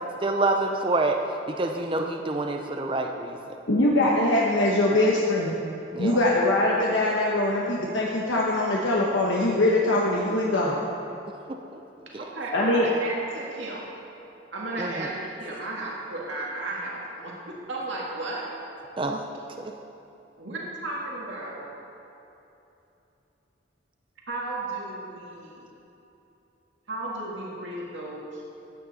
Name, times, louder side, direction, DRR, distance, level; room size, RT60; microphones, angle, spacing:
voice 1, 0.2-1.2 1.5-3.6 5.9-6.2 12.1-12.2 14.8-15.1 19.0-19.2 19.6-19.7, right 2 dB, 25° right, 3 dB, 0.5 m, -27 dB
voice 2, 3.7-5.6 6.0-10.8 12.5-12.9, left 1 dB, 75° left, -4 dB, 1.1 m, -22 dB
voice 3, 12.2-13.8 14.5-18.5 20.4-21.7 24.3-25.7 26.9-28.4, right 2 dB, 75° right, -4 dB, 2.0 m, -34 dB
14.5 x 9.2 x 4.1 m, 2.9 s
head